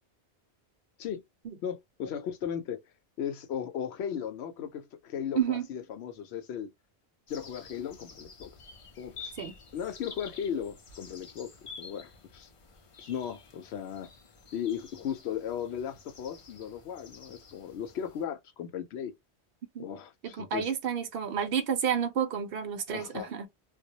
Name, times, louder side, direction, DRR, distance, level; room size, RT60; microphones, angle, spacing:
voice 1, 1.6-2.8 3.2-6.7 7.3-8.5 9.0-9.3 9.7-12.5 13.0-14.1 14.5-19.1 19.8-20.7 22.9-23.3, left 8 dB, 75° left, 0.8 m, -36 dB
voice 2, 5.3-5.7 9.4-9.5 19.7-19.8 20.4-23.5, right 8 dB, 65° right, 0.7 m, -30 dB
sound 1, 7.3-18.2, left 5 dB, 45° left, 0.4 m, -50 dB
2.2 x 2.0 x 2.7 m
omnidirectional pair, 1.1 m